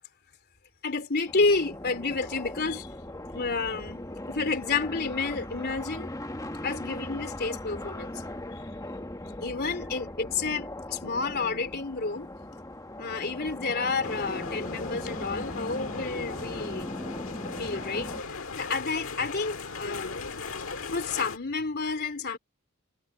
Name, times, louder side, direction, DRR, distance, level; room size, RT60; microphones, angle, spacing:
voice 1, 0.8-2.9 3.3-6.1 6.6-8.2 9.4-12.3 13.0-16.9 17.4-20.2 20.9-22.4, left 4 dB, 45° left, 3.4 m, -30 dB
sound 1, 1.3-18.2, left 1 dB, 15° left, 1.5 m, -39 dB
sound 2, 14.0-21.4, left 4 dB, 65° left, 1.7 m, -38 dB
head